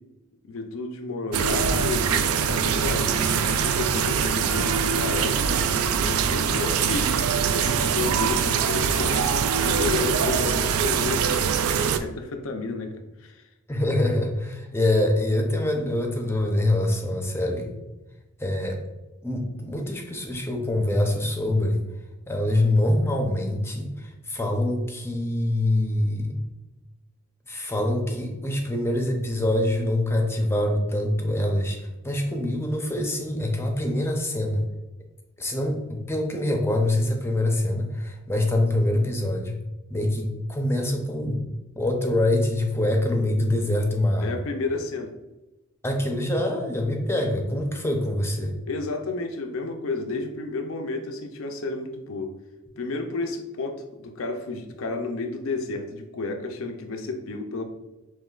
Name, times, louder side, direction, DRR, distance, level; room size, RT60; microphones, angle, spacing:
voice 1, 0.4-5.4 5.9-7.1 7.5-11.3 12.0-12.9 13.2-13.4 44.2-45.1 48.7-52.4 52.8-57.6, left 3 dB, 70° left, 5 dB, 0.5 m, -31 dB
sound 1, 1.3-12.0, right 6 dB, 85° right, 0.3 m, -23 dB
voice 2, 13.7-17.7 18.4-18.8 19.2-21.8 22.3-26.4 27.5-34.6 35.4-39.6 39.9-41.4 41.7-44.4 45.8-48.5, left 1 dB, 10° left, 2 dB, 0.6 m, -25 dB
5.6 x 3.0 x 2.4 m, 1.0 s
head